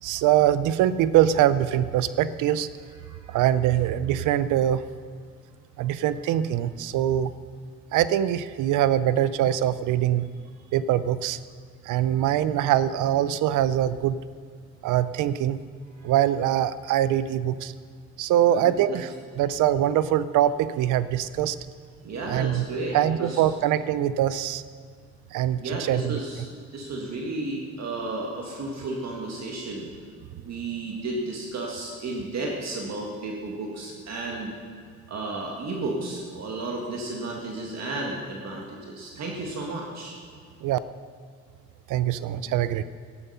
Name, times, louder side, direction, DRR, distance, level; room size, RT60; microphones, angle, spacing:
voice 1, 0.0-2.7 3.3-4.8 5.8-7.3 7.9-10.3 10.7-11.4 11.8-14.2 14.8-15.6 16.0-17.7 18.2-19.1 19.4-21.6 22.3-22.7 22.9-24.6 25.3-26.2 40.6-40.8 41.9-42.8, right 11 dB, 85° right, 15 dB, 0.6 m, -23 dB
voice 2, 3.0-3.4 18.5-19.0 22.0-23.4 25.6-26.4 26.7-29.9 30.4-34.5 35.1-40.2, right 2 dB, 60° right, -1 dB, 1.9 m, -33 dB
11.0 x 11.0 x 5.7 m, 2.1 s
cardioid pair, 90°, 30 cm